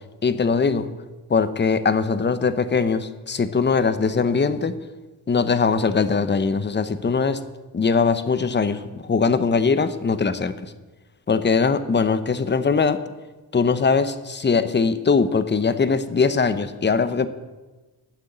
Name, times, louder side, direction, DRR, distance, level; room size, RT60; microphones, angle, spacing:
voice 1, 0.2-0.9 1.3-4.7 5.3-7.4 7.7-10.7 11.3-13.0 13.5-17.3, left 5 dB, 30° left, 12 dB, 0.8 m, -21 dB
12.0 x 6.4 x 8.9 m, 1.2 s
cardioid pair, 95°, 38 cm